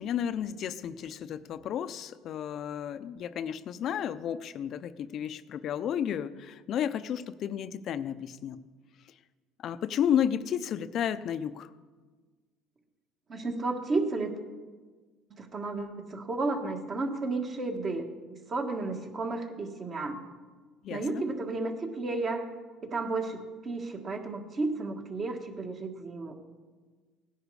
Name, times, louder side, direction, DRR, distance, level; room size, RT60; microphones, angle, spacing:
voice 1, 0.0-8.6 9.6-11.7 20.8-21.2, left 9 dB, 50° left, 13 dB, 0.6 m, -32 dB
voice 2, 13.3-14.4 15.3-18.1 18.5-20.2 20.9-22.5 22.8-26.3, right 3 dB, 35° right, 4 dB, 1.7 m, -32 dB
17.0 x 10.0 x 4.9 m, 1.4 s
cardioid pair, 115°, 0 cm